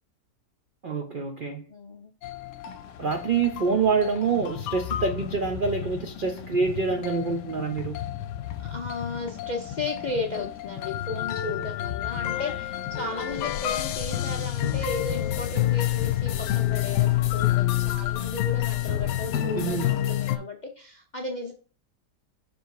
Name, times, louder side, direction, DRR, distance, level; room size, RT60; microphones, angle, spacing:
voice 1, 0.8-1.7 3.0-8.0 19.5-19.9, right 5 dB, 75° right, 0.4 m, -26 dB
voice 2, 1.7-2.1 8.6-21.5, left 3 dB, 55° left, 0.5 m, -35 dB
sound 1, 2.2-20.4, left 13 dB, 85° left, 1.2 m, -29 dB
6.2 x 3.5 x 4.6 m
omnidirectional pair, 1.8 m